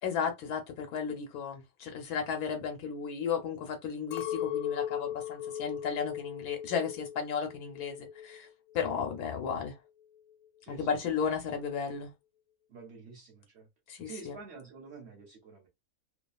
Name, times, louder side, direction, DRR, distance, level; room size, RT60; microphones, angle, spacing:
voice 1, 0.0-8.5 8.7-9.8 10.7-12.1 13.9-14.4, left 6 dB, 85° left, 1.3 m, -34 dB
Chink clink, 4.1-8.5 8.7-9.5, left 10 dB, 70° left, 0.9 m, -38 dB
voice 2, 12.7-13.7 14.0-15.7, right 5 dB, 50° right, 1.0 m, -48 dB
2.7 x 2.4 x 2.3 m
omnidirectional pair, 1.6 m